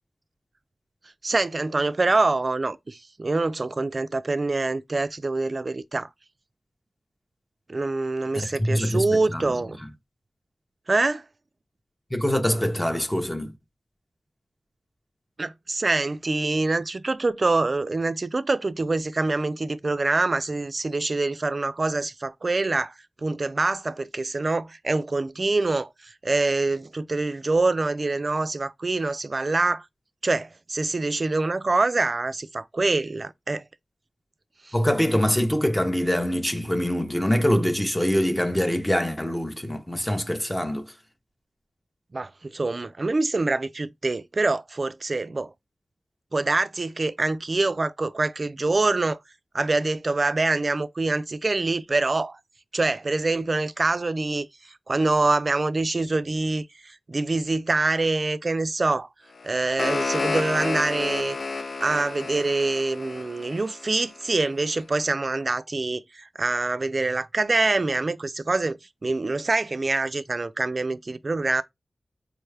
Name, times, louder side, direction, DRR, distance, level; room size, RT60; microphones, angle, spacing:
voice 1, 1.2-6.1 7.7-9.8 10.9-11.2 15.4-29.9 30.2-33.6 34.6-34.8 42.1-45.5 46.3-49.2 49.5-52.4 52.7-59.1 59.4-61.4 61.8-71.6, right 3 dB, 40° right, 0.3 m, -25 dB
voice 2, 8.3-9.4 12.1-13.5 34.7-40.9, equal, 10° left, 0.6 m, -24 dB
sound 1, 59.4-64.4, left 3 dB, 60° left, 0.4 m, -31 dB
4.7 x 2.3 x 3.2 m
wide cardioid pair, 105°, 0 cm